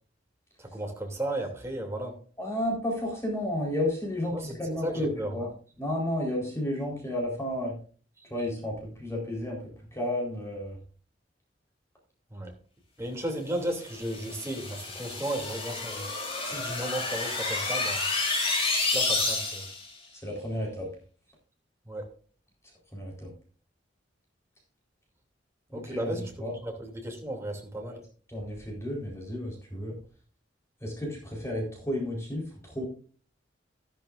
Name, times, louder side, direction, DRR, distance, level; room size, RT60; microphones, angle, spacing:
voice 1, 0.6-2.2 4.3-5.4 8.2-8.3 12.3-12.5 13.0-16.0 16.4-18.1 18.9-19.7 21.8-22.1 25.7-28.0, right 1 dB, 15° right, 1 dB, 2.9 m, -34 dB
voice 2, 2.4-5.5 5.8-7.8 8.3-9.6 9.9-10.8 20.2-20.9 22.9-23.3 25.7-26.1 26.4-26.5 28.3-29.9 30.8-32.8, left 1 dB, 15° left, -2 dB, 4.3 m, -32 dB
sound 1, 13.9-19.9, left 3 dB, 35° left, 3.6 m, -30 dB
12.5 x 12.5 x 2.6 m, 0.41 s
head